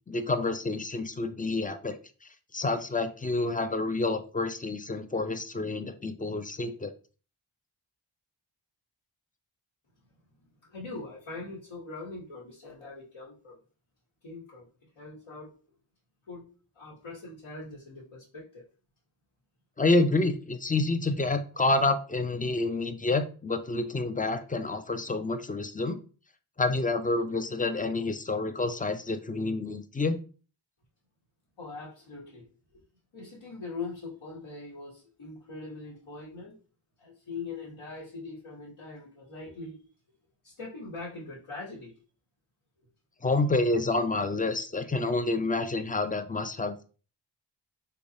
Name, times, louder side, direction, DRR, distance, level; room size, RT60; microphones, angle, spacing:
voice 1, 0.1-2.0 2.5-6.9 19.8-26.0 26.6-30.2 43.2-46.8, left 2 dB, 20° left, 9 dB, 0.3 m, -28 dB
voice 2, 10.6-13.6 14.2-14.7 15.0-15.5 16.3-16.5 16.7-18.6 31.6-32.5 32.7-32.8 33.1-36.6 37.0-39.8 40.4-41.9, left 3 dB, 75° left, -8 dB, 1.2 m, -42 dB
3.3 x 3.0 x 2.7 m, 0.38 s
cardioid pair, 50°, 49 cm